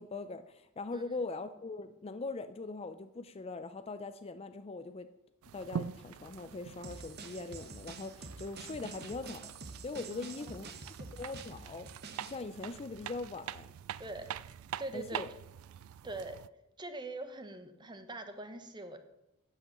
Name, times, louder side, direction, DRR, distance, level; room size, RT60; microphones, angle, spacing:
voice 1, 0.0-5.1 5.5-10.7 11.2-11.9 12.2-13.7 14.9-15.3, left 3 dB, 25° left, 10 dB, 0.4 m, -41 dB
sound 1, 5.4-16.5, right 8 dB, 75° right, 0.3 m, -45 dB
sound 2, 6.8-12.4, right 4 dB, 50° right, 1.0 m, -48 dB
voice 2, 10.1-10.4 10.8-10.9 14.0-14.3 14.8-15.2 16.0-16.4 16.8-19.0, right 2 dB, 20° right, 8 dB, 1.0 m, -43 dB
9.1 x 7.8 x 7.4 m, 0.92 s
head